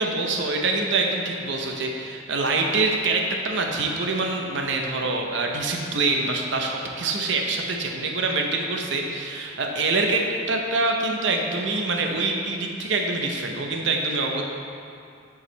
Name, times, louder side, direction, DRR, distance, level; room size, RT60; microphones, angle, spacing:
voice 1, 0.0-14.4, right 3 dB, 65° right, 2 dB, 0.7 m, -25 dB
9.1 x 4.8 x 3.2 m, 2.5 s
head